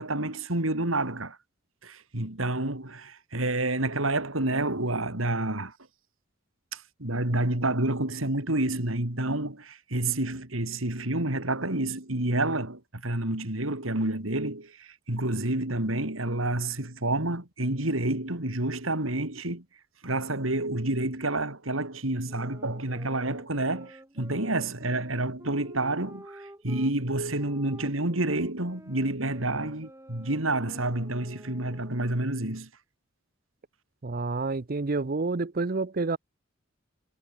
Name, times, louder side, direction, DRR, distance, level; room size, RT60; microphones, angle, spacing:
voice 1, 0.0-1.4 1.8-5.7 6.7-19.6 20.0-32.7, right 2 dB, 80° right, 4.0 m, -29 dB
sound 1, 22.2-26.9 27.4-32.4, right 1 dB, 15° right, 3.8 m, -49 dB
voice 2, 34.0-36.2, right 3 dB, 45° right, 0.7 m, -29 dB
head